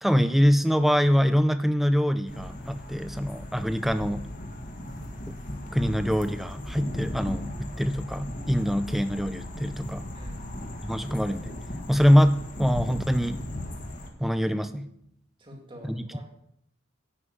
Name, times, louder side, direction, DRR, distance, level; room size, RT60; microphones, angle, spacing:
voice 1, 0.0-4.3 5.3-5.4 5.7-10.0 10.8-11.5 11.9-13.4 14.2-14.9 15.8-16.2, equal, ahead, 10 dB, 0.5 m, -24 dB
sound 1, 2.3-14.1, left 1 dB, 40° left, 1.6 m, -37 dB
voice 2, 10.1-10.5 15.4-16.2, equal, 25° right, 1 dB, 2.4 m, -47 dB
11.0 x 5.8 x 8.0 m, 0.72 s
head